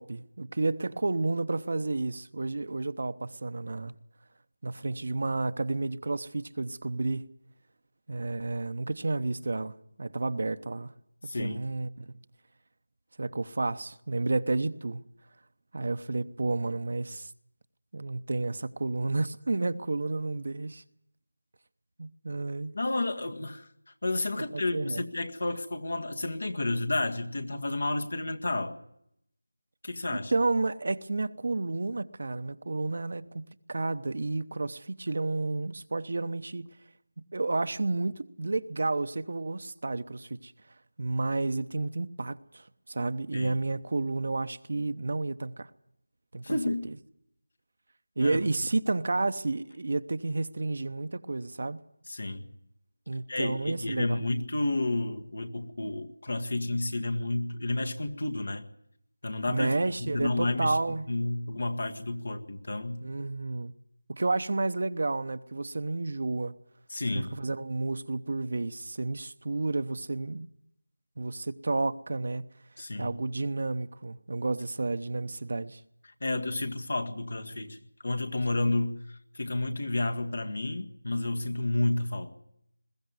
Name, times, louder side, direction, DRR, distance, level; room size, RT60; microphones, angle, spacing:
voice 1, 0.0-3.9 4.6-7.3 8.1-10.9 11.4-12.2 13.2-15.0 15.7-17.3 17.9-20.8 22.0-22.7 24.5-25.0 30.1-36.7 37.3-40.5 41.0-45.7 46.3-46.7 48.2-51.8 53.1-54.2 59.5-61.1 63.0-63.7 64.1-66.5 67.1-70.5 71.2-72.4 73.0-75.8, right 3 dB, 55° right, 0.9 m, -31 dB
voice 2, 11.3-11.6 22.7-23.7 24.0-28.8 29.8-30.3 43.3-43.6 46.4-46.9 48.2-48.4 52.1-52.5 53.3-58.7 59.2-60.8 61.1-63.1 66.9-67.3 72.8-73.1 76.2-77.8 78.0-82.3, left 2 dB, 65° left, 1.9 m, -31 dB
21.5 x 14.5 x 9.5 m
figure-of-eight pair, 170°, 0 cm